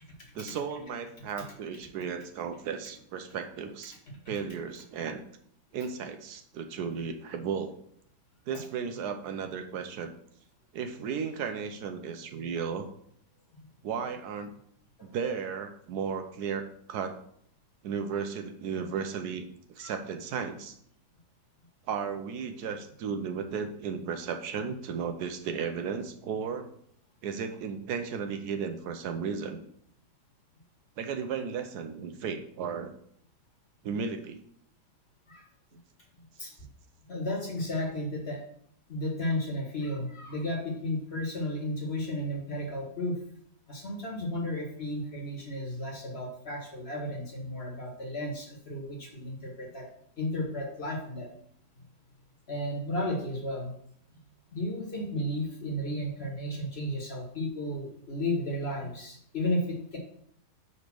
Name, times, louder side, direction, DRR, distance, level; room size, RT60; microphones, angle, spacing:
voice 1, 0.3-4.0 4.3-5.2 5.7-7.7 8.5-10.1 10.7-12.9 13.8-14.5 15.0-17.1 17.8-19.5 19.7-20.8 21.9-26.7 27.2-29.6 31.0-32.9 33.8-34.4, right 6 dB, 75° right, 7 dB, 1.1 m, -34 dB
voice 2, 37.1-38.4 38.9-43.2 43.7-49.9 50.2-51.3 52.5-53.7 54.5-60.0, left 1 dB, 40° left, 0 dB, 1.4 m, -33 dB
5.1 x 4.1 x 5.9 m, 0.66 s
omnidirectional pair, 1.8 m